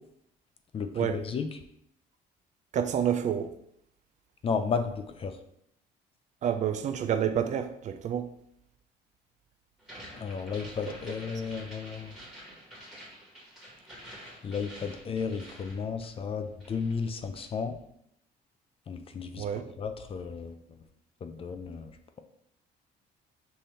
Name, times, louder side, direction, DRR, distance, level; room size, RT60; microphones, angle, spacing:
voice 1, 0.7-1.5 4.4-5.3 10.2-12.2 14.4-17.7 18.9-19.5 19.8-20.6 21.2-21.9, left 5 dB, 35° left, 0.4 m, -33 dB
voice 2, 2.7-3.5 6.4-8.3 19.4-19.6, right 9 dB, 45° right, 0.4 m, -28 dB
sound 1, 9.8-16.4 16.6-17.6, equal, 5° right, 1.5 m, -48 dB
5.5 x 2.7 x 3.2 m
cardioid pair, 110°, 17 cm